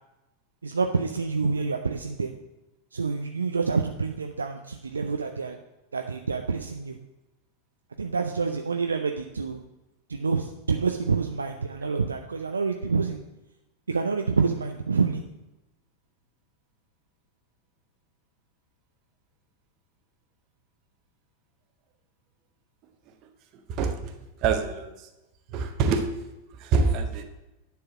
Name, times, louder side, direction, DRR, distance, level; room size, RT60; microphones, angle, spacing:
voice 1, 0.6-2.3 2.9-5.6 5.9-7.0 8.0-9.6 10.1-13.2 13.9-15.2, right 4 dB, 75° right, 5 dB, 0.5 m, -27 dB
voice 2, 23.7-24.1 24.4-24.9 25.5-26.1 26.6-27.2, right 4 dB, 40° right, 6 dB, 1.0 m, -25 dB
10.0 x 4.7 x 6.0 m, 1.0 s
figure-of-eight pair, 90°, 0 cm